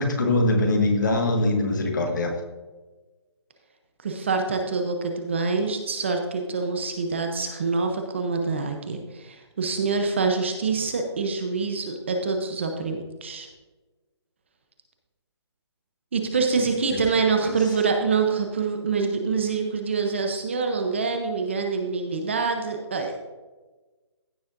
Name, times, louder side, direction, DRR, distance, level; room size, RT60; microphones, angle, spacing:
voice 1, 0.0-2.3 16.9-17.0, left 2 dB, 40° left, 3 dB, 1.6 m, -22 dB
voice 2, 4.0-13.5 16.1-23.3, right 4 dB, 25° right, 4 dB, 0.7 m, -26 dB
15.5 x 7.1 x 2.6 m, 1.2 s
hypercardioid pair, 175°, 15 cm